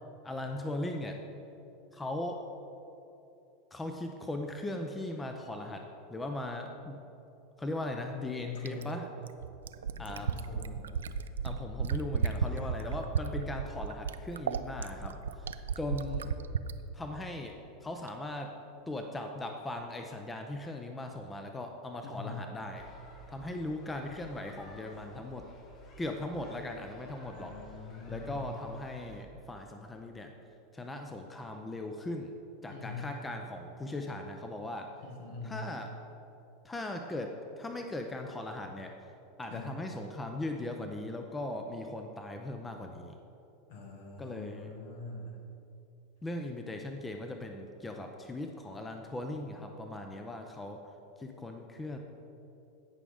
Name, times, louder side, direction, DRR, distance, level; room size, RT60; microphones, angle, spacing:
voice 1, 0.2-1.2 1.9-2.4 3.7-7.0 7.6-9.1 10.0-10.3 11.4-15.5 15.8-16.3 16.9-17.5 17.8-18.5 18.9-22.9 23.3-25.5 26.0-27.6 28.1-30.3 30.7-32.3 32.6-34.9 35.4-35.9 36.6-39.0 39.4-43.2 44.2-44.7 46.2-50.8 51.2-52.0, left 1 dB, 15° left, 4 dB, 0.7 m, -39 dB
voice 2, 8.4-8.9 10.0-10.9 12.5-13.0 22.0-22.4 27.3-28.4 32.7-33.1 35.0-35.7 39.5-39.8 43.7-45.4, left 3 dB, 65° left, 1 dB, 1.7 m, -43 dB
Fill (with liquid), 8.6-16.8 18.1-18.2, right 7 dB, 70° right, 0.3 m, -33 dB
sound 1, 22.7-29.2, left 2 dB, 35° left, 1.3 m, -53 dB
17.5 x 6.0 x 3.6 m, 2.8 s
figure-of-eight pair, 85°, 0 cm